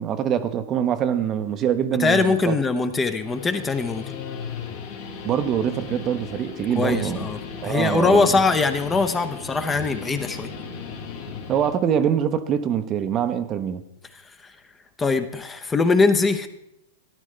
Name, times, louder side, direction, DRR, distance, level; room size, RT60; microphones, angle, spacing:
voice 1, 0.0-2.5 5.2-7.3 7.6-8.4 11.5-13.8, right 9 dB, 30° right, 0.7 m, -24 dB
voice 2, 2.0-4.2 6.8-10.5 14.4-14.5 15.0-16.5, left 4 dB, 15° left, 0.8 m, -22 dB
Guitar, 3.1-11.7, left 5 dB, 55° left, 2.2 m, -36 dB
13.0 x 11.0 x 3.3 m
hypercardioid pair, 115°, 0 cm